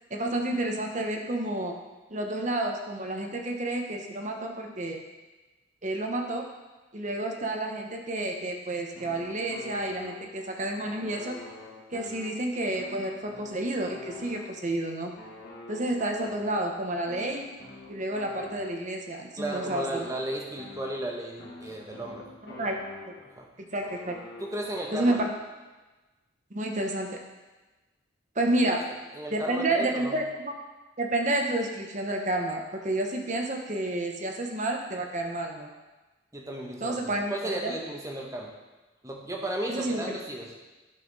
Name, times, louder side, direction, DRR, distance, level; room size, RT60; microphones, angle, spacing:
voice 1, 0.1-1.8 2.1-5.0 5.8-6.5 6.9-11.4 11.9-15.1 15.7-17.5 17.9-20.0 22.6-22.7 23.7-24.2 24.9-25.3 26.5-27.2 28.4-28.9 29.3-30.5 31.0-35.7 36.8-37.3 37.6-37.7 39.7-40.0, right 1 dB, 40° right, 2 dB, 1.0 m, -30 dB
sound 1, 8.9-10.5 10.8-14.8 15.2-19.1 19.5-23.4 23.8-25.6, left 3 dB, 55° left, 1.5 m, -46 dB
voice 2, 19.4-22.7 23.2-23.5 24.4-25.2 29.1-30.2 36.3-38.5 39.0-40.7, right 1 dB, 15° right, 0 dB, 1.1 m, -35 dB
11.5 x 5.8 x 4.1 m, 1.2 s
head